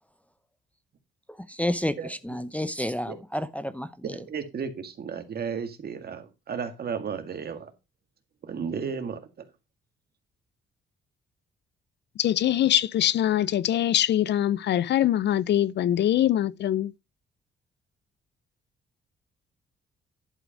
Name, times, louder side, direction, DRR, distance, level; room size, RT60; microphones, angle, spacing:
voice 1, 1.5-3.9, left 1 dB, 5° left, 0.7 m, -30 dB
voice 2, 4.0-7.7 8.4-9.5, right 6 dB, 50° right, 1.9 m, -34 dB
voice 3, 12.2-16.9, left 11 dB, 60° left, 0.5 m, -23 dB
11.0 x 4.8 x 5.1 m
cardioid pair, 90°, 20 cm